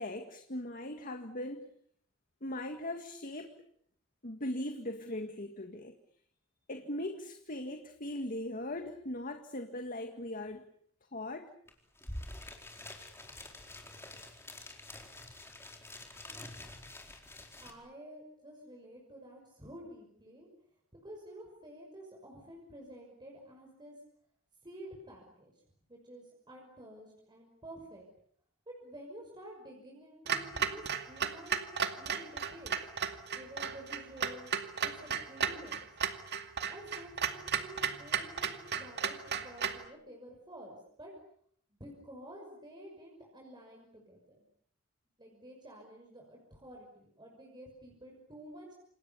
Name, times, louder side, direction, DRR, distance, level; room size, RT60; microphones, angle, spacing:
voice 1, 0.0-1.7 2.4-3.5 4.2-6.0 6.7-10.7 11.1-11.5, left 1 dB, 40° left, 6 dB, 1.9 m, -39 dB
sound 1, 11.7-11.8 11.9-17.7, left 1 dB, 10° left, 4.4 m, -47 dB
voice 2, 17.6-20.5 21.0-24.0 24.6-25.5 25.9-28.1 28.7-32.8 33.3-34.5 34.8-35.9 36.7-41.1 41.8-44.4 45.2-48.8, equal, 20° right, 0 dB, 5.9 m, -50 dB
Clock, 30.3-39.8, right 7 dB, 55° right, 2.3 m, -35 dB
28.5 x 27.5 x 7.0 m, 0.65 s
head